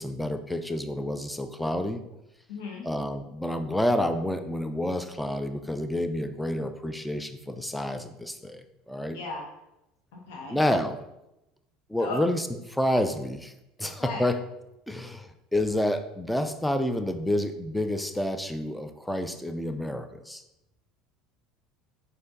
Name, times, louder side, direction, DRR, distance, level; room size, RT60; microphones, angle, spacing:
voice 1, 0.0-2.0 2.8-9.2 10.5-11.0 11.9-13.5 13.8-14.4 14.9-20.4, left 1 dB, 5° left, 8 dB, 0.4 m, -29 dB
voice 2, 2.5-2.9 9.1-9.4 10.1-10.6 12.0-12.2 13.8-14.3, left 3 dB, 75° left, 0 dB, 0.8 m, -36 dB
4.5 x 2.6 x 3.8 m, 0.90 s
hypercardioid pair, 80°, 0 cm